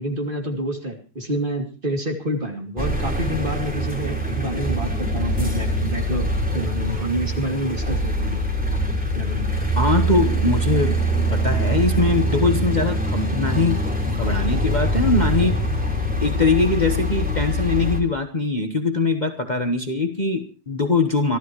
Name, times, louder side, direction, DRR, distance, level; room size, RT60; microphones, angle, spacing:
voice 1, 0.0-6.3 6.5-8.5 9.1-9.5, right 1 dB, 35° right, 3 dB, 3.0 m, -28 dB
sound 1, 2.8-18.0, right 1 dB, 5° right, 2.9 m, -23 dB
voice 2, 9.7-15.6 16.2-21.4, left 3 dB, 30° left, 6 dB, 1.3 m, -22 dB
26.5 x 13.0 x 3.1 m, 0.36 s
omnidirectional pair, 1.6 m